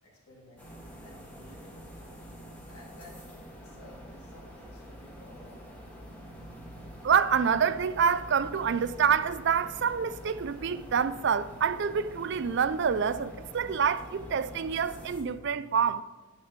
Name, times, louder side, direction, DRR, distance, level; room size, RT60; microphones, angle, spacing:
voice 1, 0.0-2.2 2.6-5.6, left 1 dB, 90° left, 3.0 m, -54 dB
sound 1, 0.6-15.2, equal, 5° left, 1.6 m, -46 dB
voice 2, 7.0-16.0, right 7 dB, 50° right, 0.4 m, -27 dB
9.7 x 8.5 x 5.1 m
head